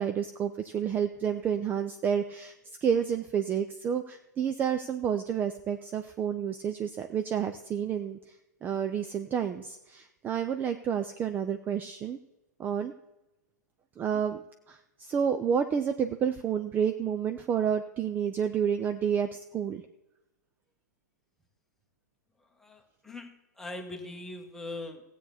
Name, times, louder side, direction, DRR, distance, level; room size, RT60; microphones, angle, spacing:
voice 1, 0.0-2.6 2.8-8.4 8.6-12.2 12.6-12.9 14.0-19.8, right 8 dB, 20° right, 8 dB, 0.5 m, -30 dB
voice 2, 22.6-23.3 23.6-25.0, left 2 dB, 5° left, 3 dB, 1.4 m, -41 dB
16.0 x 8.3 x 4.2 m, 0.97 s
figure-of-eight pair, 105°, 9 cm